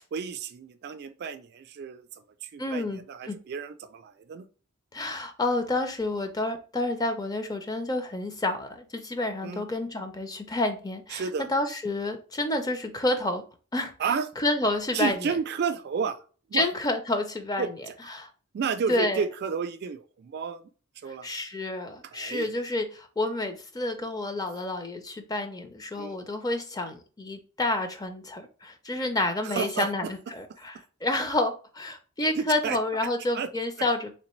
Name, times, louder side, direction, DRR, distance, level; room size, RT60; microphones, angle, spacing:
voice 1, 0.1-2.0 2.4-4.5 9.4-9.6 11.1-11.5 14.0-14.3 14.9-16.2 16.5-16.7 17.6-17.9 18.5-20.6 21.0-21.3 22.0-22.5 26.0-26.2 29.4-30.1 32.3-32.8 33.4-33.5 33.8-33.9, right 6 dB, 50° right, 10 dB, 0.3 m, -31 dB
voice 2, 2.6-3.0 3.3-3.4 4.9-11.2 11.5-13.4 13.7-13.9 14.4-15.2 16.5-17.7 18.1-18.3 18.9-19.2 21.2-30.8 31.0-34.2, left 2 dB, 20° left, 7 dB, 0.5 m, -29 dB
3.3 x 3.2 x 3.0 m, 0.37 s
head